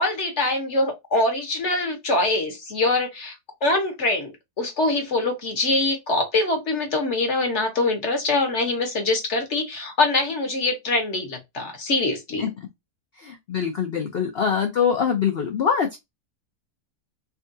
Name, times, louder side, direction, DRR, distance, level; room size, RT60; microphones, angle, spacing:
voice 1, 0.0-3.4 3.6-4.3 4.6-12.4, left 2 dB, 50° left, 1.1 m, -24 dB
voice 2, 13.2-16.0, left 7 dB, 85° left, 0.5 m, -23 dB
3.6 x 2.3 x 2.6 m
omnidirectional pair, 1.7 m